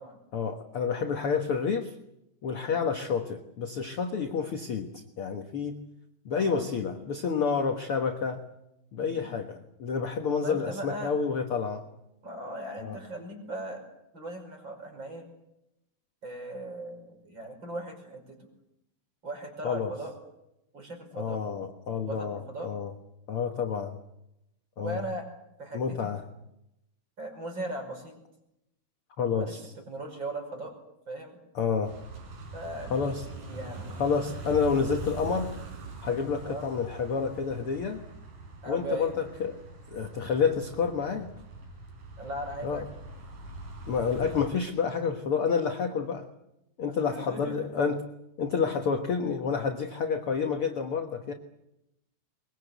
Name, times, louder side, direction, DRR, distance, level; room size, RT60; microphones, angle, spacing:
voice 1, 0.3-1.9 2.4-5.8 6.2-8.4 8.9-11.8 12.8-13.0 19.6-19.9 21.1-22.9 23.3-24.0 24.8-25.0 25.7-26.2 29.2-29.6 31.5-31.9 32.9-33.2 34.0-35.5 36.0-38.0 38.6-39.6 39.9-41.3 42.6-42.8 43.9-46.3 46.8-48.0 48.4-51.3, left 6 dB, 65° left, 5 dB, 1.4 m, -29 dB
voice 2, 6.3-6.7 9.0-9.3 10.4-11.1 12.2-13.8 14.1-15.3 16.2-18.4 19.2-20.1 20.7-21.4 21.9-22.7 24.8-25.2 25.6-26.1 27.2-28.2 29.4-29.6 29.9-30.7 31.1-31.4 32.5-33.0 33.3-33.9 36.4-36.7 38.6-39.2 42.2-42.8 46.9-47.7, right 1 dB, 30° right, 4 dB, 5.8 m, -38 dB
sound 1, 31.8-44.5, right 2 dB, 50° right, 5.9 m, -43 dB
23.0 x 22.5 x 8.1 m, 0.86 s
omnidirectional pair, 4.6 m